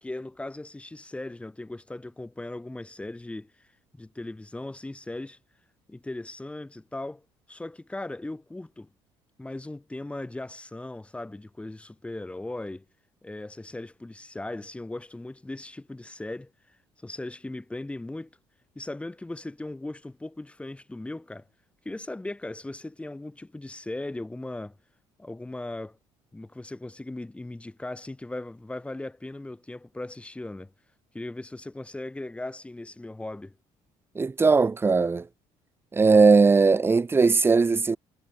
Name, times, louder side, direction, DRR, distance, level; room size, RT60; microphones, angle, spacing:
voice 1, 0.0-3.7 3.9-5.4 5.9-8.9 9.4-12.9 13.2-16.5 17.0-18.3 18.8-21.5 21.8-24.8 25.2-26.0 26.3-30.7 31.1-33.6, left 2 dB, 10° left, 4.1 m, -38 dB
voice 2, 34.1-35.3 35.9-38.0, right 4 dB, 20° right, 1.0 m, -19 dB
cardioid pair, 95°, 11 cm